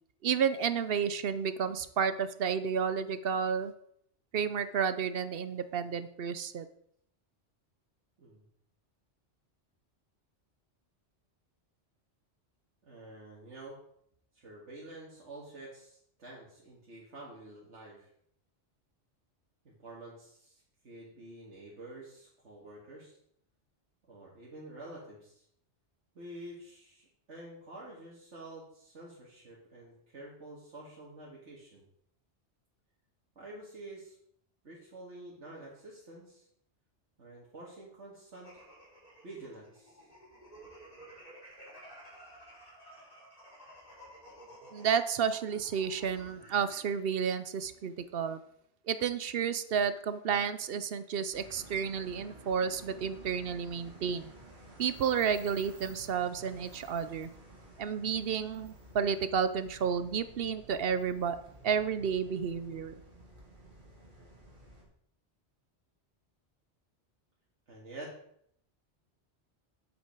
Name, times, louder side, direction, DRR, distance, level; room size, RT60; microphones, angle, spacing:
voice 1, 0.2-3.7 4.3-6.7 44.7-48.4 48.9-54.3 54.8-57.3 57.8-61.4 61.6-62.9, right 7 dB, 60° right, 12 dB, 0.8 m, -31 dB
voice 2, 12.9-13.8 14.3-18.1 19.6-23.2 24.1-25.4 26.1-31.8 33.4-34.2 34.6-36.4 37.2-38.6 39.2-40.0 67.7-68.1, right 2 dB, 90° right, -5 dB, 2.3 m, -48 dB
sound 1, 38.3-47.0, right 1 dB, 35° left, 4.5 m, -53 dB
sound 2, 51.3-64.8, right 1 dB, 45° right, 2.4 m, -53 dB
8.1 x 8.0 x 4.6 m, 0.68 s
omnidirectional pair, 1.2 m